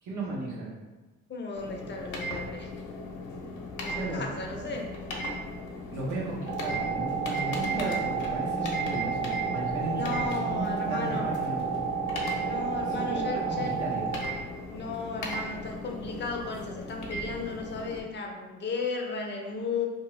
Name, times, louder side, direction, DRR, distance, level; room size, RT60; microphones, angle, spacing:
voice 1, 0.0-0.7 3.9-4.3 5.9-11.7 13.0-14.1, right 2 dB, 80° right, -4 dB, 0.9 m, -35 dB
voice 2, 1.3-2.7 3.8-4.9 9.9-11.3 12.4-13.8 14.7-19.9, left 4 dB, 35° left, 2 dB, 0.4 m, -35 dB
sound 1, 1.6-18.0, equal, 85° left, 0.6 m, -37 dB
sound 2, 6.5-14.2, right 6 dB, 45° right, 0.6 m, -31 dB
2.7 x 2.3 x 3.0 m, 1.2 s
cardioid pair, 90°, 30 cm